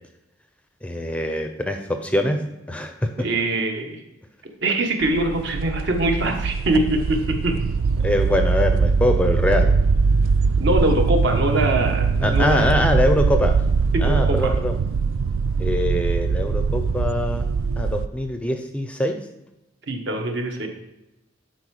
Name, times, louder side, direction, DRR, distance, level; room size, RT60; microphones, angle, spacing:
voice 1, 0.8-3.3 8.0-9.7 12.2-13.5 14.0-14.8 15.6-17.5 17.8-19.2, left 1 dB, 5° left, 6 dB, 0.5 m, -23 dB
voice 2, 3.2-4.0 4.6-7.6 10.6-12.7 13.9-14.5 19.9-20.7, right 1 dB, 55° right, 3 dB, 1.3 m, -23 dB
sound 1, 5.0-18.1, right 5 dB, 80° right, 0.4 m, -21 dB
11.0 x 4.5 x 4.8 m, 0.93 s
head